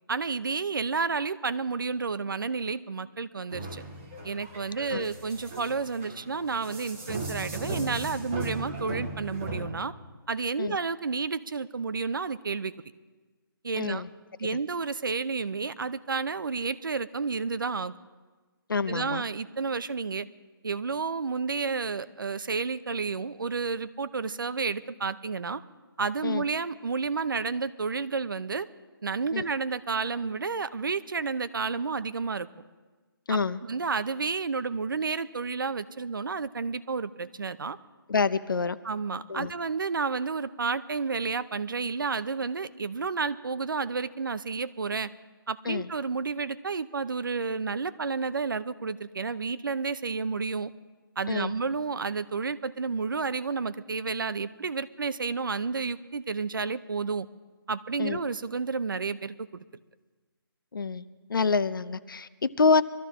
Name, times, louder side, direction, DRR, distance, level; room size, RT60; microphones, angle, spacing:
voice 1, 0.1-3.8 4.2-9.9 10.3-12.7 13.6-14.0 14.4-17.9 18.9-20.3 20.6-25.6 26.0-28.7 29.0-32.5 33.3-37.8 38.8-45.1 45.5-50.7 51.2-57.3 57.7-59.6, right 4 dB, 60° right, 14 dB, 0.7 m, -31 dB
sound 1, 3.5-9.6, right 2 dB, 5° right, 0.4 m, -37 dB
voice 2, 13.8-14.1 18.7-19.2 26.2-26.4 29.3-29.4 33.3-33.6 38.1-38.8 39.3-39.5 45.7-45.9 51.3-51.5 58.0-58.2 60.7-62.8, left 4 dB, 60° left, 15 dB, 0.7 m, -27 dB
23.5 x 13.5 x 3.6 m, 1.3 s
hypercardioid pair, 175°, 13 cm